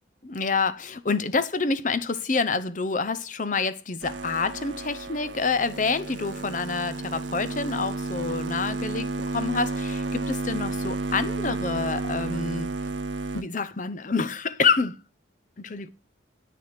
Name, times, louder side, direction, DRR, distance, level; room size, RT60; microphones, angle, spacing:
voice 1, 0.2-12.7 13.3-15.0 15.6-15.9, left 4 dB, 40° left, 0.7 m, -27 dB
sound 1, 4.0-13.4, right 3 dB, 75° right, 0.9 m, -32 dB
9.6 x 6.4 x 6.5 m
head